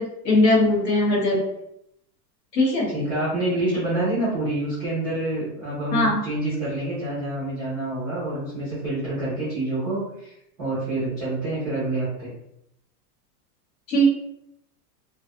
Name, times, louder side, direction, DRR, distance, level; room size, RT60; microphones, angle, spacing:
voice 1, 0.0-1.4 2.5-2.9 5.9-6.2 13.9-14.1, left 1 dB, 75° left, -3 dB, 1.2 m, -20 dB
voice 2, 2.9-12.3, right 2 dB, 5° right, -11 dB, 0.3 m, -27 dB
2.4 x 2.3 x 2.5 m, 0.78 s
supercardioid pair, 175°, 50 cm